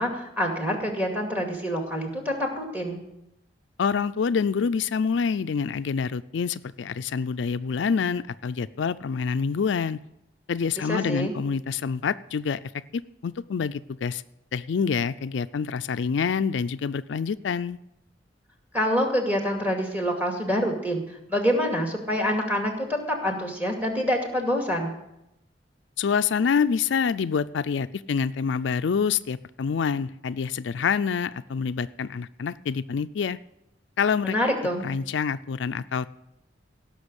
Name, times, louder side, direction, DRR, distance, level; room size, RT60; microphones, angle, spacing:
voice 1, 0.0-3.0 10.9-11.3 18.7-21.0 21.3-24.9 34.2-34.9, equal, 10° right, 2 dB, 2.3 m, -26 dB
voice 2, 3.8-10.0 10.5-14.2 14.5-17.8 26.0-33.4 34.0-34.4 34.8-36.1, left 6 dB, 75° left, 12 dB, 0.4 m, -26 dB
17.0 x 6.3 x 8.1 m, 0.87 s
head